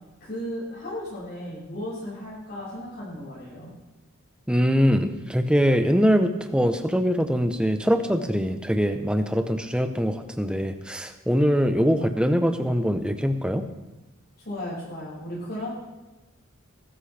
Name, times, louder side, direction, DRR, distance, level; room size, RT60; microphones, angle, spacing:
voice 1, 0.2-3.7 14.4-15.7, left 1 dB, 50° left, -9 dB, 5.9 m, -35 dB
voice 2, 4.5-13.6, equal, 5° right, 7 dB, 0.8 m, -23 dB
20.5 x 13.0 x 3.4 m, 1.1 s
head